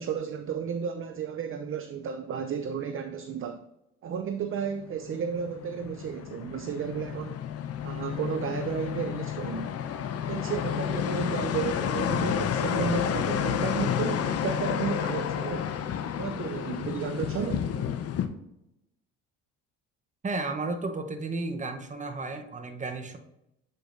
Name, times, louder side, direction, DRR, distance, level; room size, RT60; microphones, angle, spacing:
voice 1, 0.0-3.6 4.0-7.4 7.8-9.7 10.3-15.7 16.2-17.7, right 7 dB, 40° right, 0.5 m, -33 dB
sound 1, 4.8-18.3, left 9 dB, 45° left, 0.7 m, -30 dB
voice 2, 20.2-23.2, right 3 dB, 20° right, 0.9 m, -33 dB
7.7 x 5.0 x 2.6 m
supercardioid pair, 70°, 35 cm